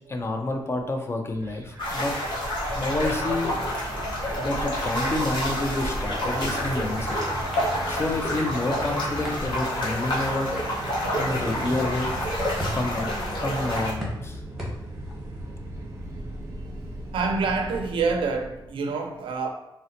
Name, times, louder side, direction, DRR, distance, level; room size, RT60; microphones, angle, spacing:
voice 1, 0.1-2.1 2.7-3.6 4.4-7.2 7.9-10.5 11.2-12.1 12.7-14.4, left 2 dB, 30° left, 4 dB, 0.5 m, -29 dB
sound 1, 1.3-18.7, right 1 dB, 30° right, 0.5 m, -37 dB
sound 2, 1.8-13.9, equal, 60° left, 1.1 m, -28 dB
sound 3, 6.3-17.1, equal, ahead, 1.0 m, -43 dB
voice 2, 17.1-19.5, right 4 dB, 80° right, 4 dB, 0.5 m, -26 dB
3.8 x 2.1 x 2.8 m, 0.88 s
cardioid pair, 105°, 9 cm